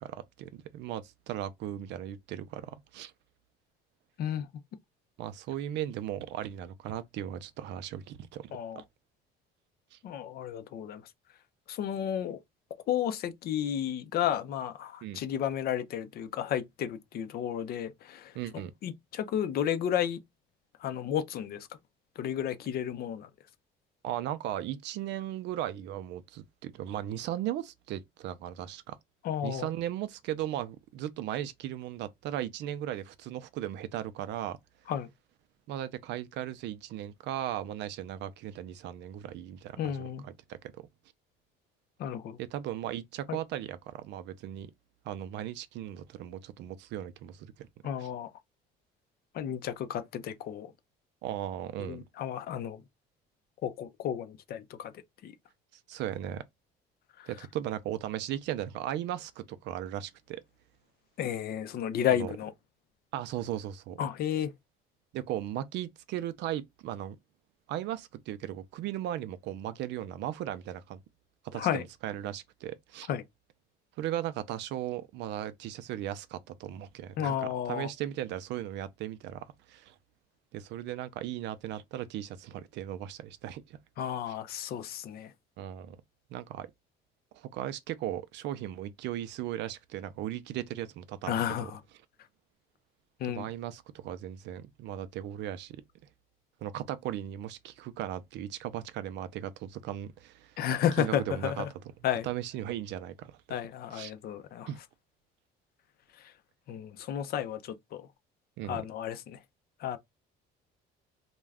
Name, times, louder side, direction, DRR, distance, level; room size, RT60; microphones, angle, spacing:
voice 1, 0.0-3.1 5.2-8.8 9.9-10.0 15.0-15.2 18.3-18.7 24.0-29.0 29.4-34.6 35.7-40.9 42.4-44.7 45.1-47.7 48.0-48.1 51.2-52.0 55.9-56.4 57.3-60.4 62.1-62.3 63.1-64.0 65.1-67.2 67.7-71.0 71.4-73.1 74.0-79.9 80.5-83.8 84.3-84.4 85.6-86.0 86.3-86.7 87.3-91.7 93.3-95.8 96.6-100.5 101.0-101.9 102.2-103.4 103.9-104.1 104.7-104.8 108.6-108.8, right 12 dB, 70° right, 0.4 m, -37 dB
voice 2, 8.5-8.8 10.0-11.0 11.7-12.4 12.9-18.2 18.8-20.2 20.8-21.7 22.2-23.3 29.2-29.7 34.9-35.1 39.8-40.2 42.0-42.4 47.8-48.3 49.4-50.7 51.8-52.8 53.6-54.9 55.2-55.3 61.2-62.5 64.0-64.5 71.5-71.8 73.1-73.2 77.2-77.9 84.0-85.3 91.3-91.7 93.2-93.5 100.6-101.7 102.0-102.3 103.5-104.7 106.7-107.6 107.9-108.0 108.7-109.4 109.8-110.0, left 10 dB, 55° left, 0.5 m, -32 dB
2.4 x 2.2 x 3.3 m
cardioid pair, 115°, 19 cm